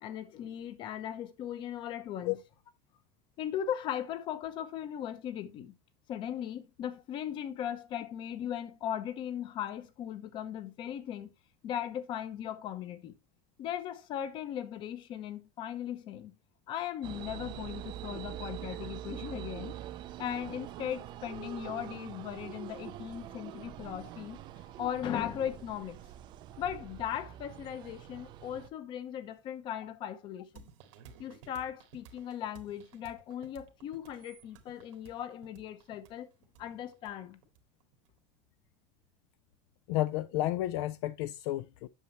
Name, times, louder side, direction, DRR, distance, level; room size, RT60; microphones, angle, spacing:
voice 1, 0.0-2.3 3.4-5.7 6.1-11.3 11.6-13.1 13.6-16.3 16.7-19.8 20.2-24.4 24.8-26.0 26.6-30.6 31.2-36.3 36.6-37.4, left 10 dB, 30° left, 0.8 m, -38 dB
sound 1, 17.0-28.7, right 12 dB, 30° right, 0.5 m, -44 dB
sound 2, 30.6-38.1, right 6 dB, 90° right, 1.9 m, -56 dB
voice 2, 39.9-41.9, left 15 dB, 60° left, 0.4 m, -31 dB
8.4 x 6.8 x 3.0 m
cardioid pair, 180°, 15 cm